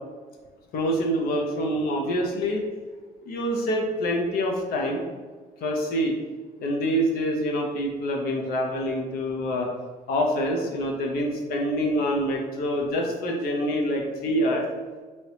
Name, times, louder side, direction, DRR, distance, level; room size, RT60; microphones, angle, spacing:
voice 1, 0.7-2.6 3.3-5.0 5.6-6.1 6.6-9.7 10.1-14.6, equal, 65° left, 0 dB, 0.6 m, -26 dB
3.2 x 2.8 x 2.9 m, 1.4 s
cardioid pair, 110°, 17 cm